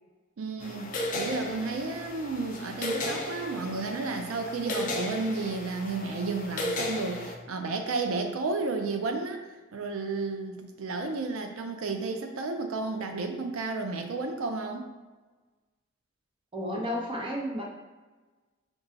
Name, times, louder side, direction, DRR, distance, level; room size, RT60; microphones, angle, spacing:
voice 1, 0.4-9.4 9.7-14.8, right 3 dB, 90° right, 4 dB, 0.4 m, -32 dB
sound 1, 0.6-7.4, left 1 dB, 40° left, 0.5 m, -35 dB
voice 2, 16.5-17.6, equal, 25° right, -2 dB, 0.8 m, -32 dB
5.3 x 2.3 x 3.8 m, 1.3 s
head